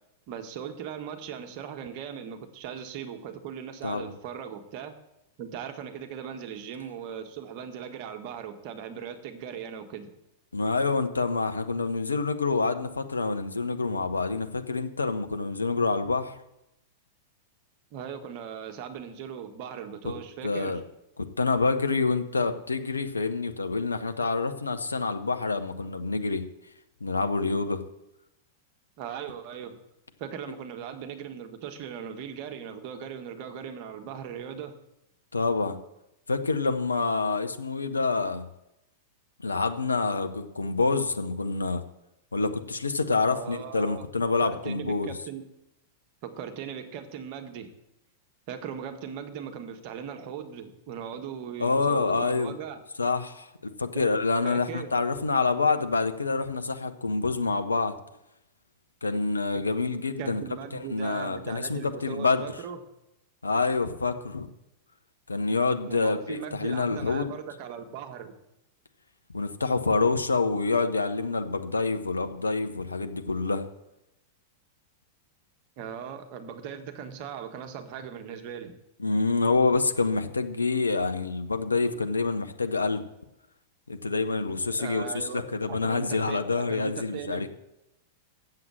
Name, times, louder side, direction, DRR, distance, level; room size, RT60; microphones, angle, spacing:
voice 1, 0.3-5.0 5.4-10.1 17.9-20.8 29.0-29.8 30.2-34.7 43.2-44.1 44.4-45.4 46.2-47.7 48.5-52.8 54.4-54.9 59.1-59.2 59.5-59.6 60.2-62.8 65.9-68.3 75.8-78.7 84.7-87.5, right 8 dB, 45° right, 6 dB, 1.4 m, -39 dB
voice 2, 10.5-16.4 20.4-20.8 21.4-26.4 27.0-27.8 35.3-35.8 36.3-38.5 39.4-41.8 42.3-45.1 51.6-52.6 53.0-57.9 59.0-60.4 60.7-62.5 63.4-64.5 65.3-67.3 69.3-73.7 79.0-83.0 83.9-87.5, left 4 dB, 85° left, 8 dB, 0.8 m, -27 dB
7.6 x 7.6 x 7.6 m, 0.87 s
figure-of-eight pair, 95°, 0 cm